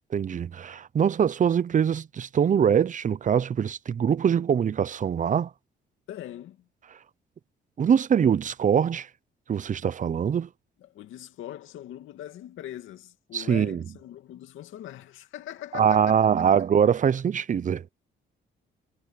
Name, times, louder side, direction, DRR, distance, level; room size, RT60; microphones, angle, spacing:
voice 1, 0.1-5.5 7.8-9.1 9.5-10.5 13.3-13.8 15.7-17.9, right 8 dB, 40° right, 0.7 m, -23 dB
voice 2, 6.1-6.7 10.8-16.5, left 12 dB, 85° left, 2.5 m, -41 dB
cardioid pair, 90°, 20 cm